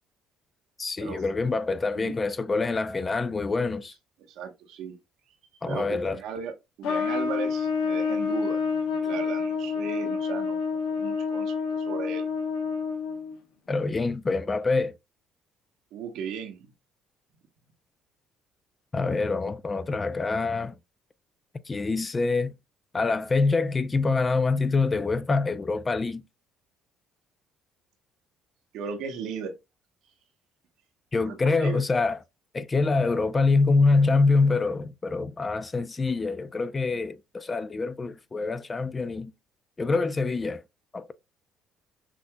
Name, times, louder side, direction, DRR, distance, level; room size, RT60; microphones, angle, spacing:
voice 1, 0.8-3.9 5.6-6.2 13.7-14.9 18.9-20.7 21.7-22.5 22.9-26.2 31.1-32.2 32.5-39.3 39.8-40.6 40.9-41.1, left 3 dB, 25° left, 0.4 m, -25 dB
voice 2, 4.3-5.0 5.6-6.5 6.8-8.6 9.0-10.6 10.9-12.2 15.9-16.7 28.7-29.5 31.2-31.8, right 6 dB, 75° right, 1.0 m, -36 dB
Trumpet, 6.8-13.4, left 5 dB, 85° left, 1.0 m, -28 dB
6.1 x 2.6 x 2.2 m
cardioid pair, 90°, 0 cm